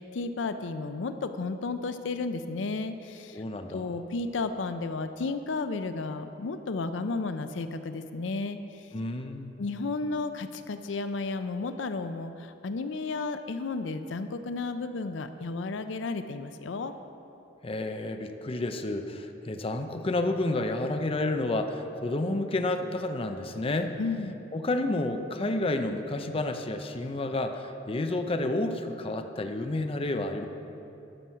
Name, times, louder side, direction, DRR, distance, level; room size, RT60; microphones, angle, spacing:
voice 1, 0.0-3.4 3.7-8.9 9.6-16.9 24.0-24.4, left 3 dB, 85° left, 10 dB, 0.5 m, -33 dB
voice 2, 3.3-3.9 8.9-9.5 17.6-24.0 24.5-30.5, left 2 dB, 30° left, 6 dB, 0.6 m, -30 dB
13.0 x 6.2 x 5.7 m, 2.8 s
head